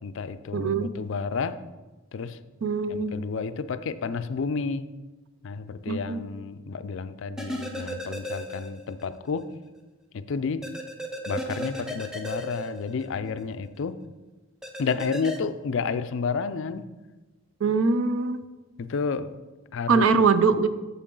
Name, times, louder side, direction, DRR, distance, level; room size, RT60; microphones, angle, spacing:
voice 1, 0.0-1.6 2.1-2.4 2.9-4.9 5.4-9.5 10.1-10.7 11.3-14.0 14.8-16.8 18.8-19.3 19.7-20.2, left 5 dB, 60° left, 12 dB, 0.4 m, -31 dB
voice 2, 0.5-0.9 2.6-3.1 5.9-6.2 17.6-18.4 19.9-20.7, right 5 dB, 70° right, 12 dB, 0.5 m, -22 dB
sound 1, 7.4-9.1 9.4-9.5 10.6-13.4 14.6-15.4, equal, 5° right, 0.6 m, -35 dB
8.5 x 7.2 x 3.8 m, 1.2 s
head